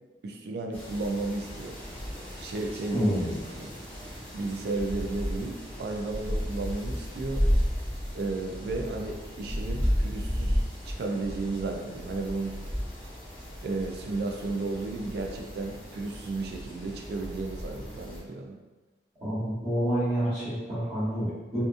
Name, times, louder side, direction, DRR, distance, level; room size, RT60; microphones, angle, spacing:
voice 1, 0.2-1.8 2.4-3.1 3.4-3.7 4.3-7.5 8.1-12.6 13.6-18.6, right 3 dB, 60° right, 2 dB, 0.3 m, -33 dB
sound 1, 0.7-18.2, equal, 10° left, 0.7 m, -33 dB
voice 2, 2.9-3.3 19.2-21.6, equal, 35° right, -12 dB, 1.0 m, -28 dB
2.6 x 2.4 x 2.4 m, 1.2 s
head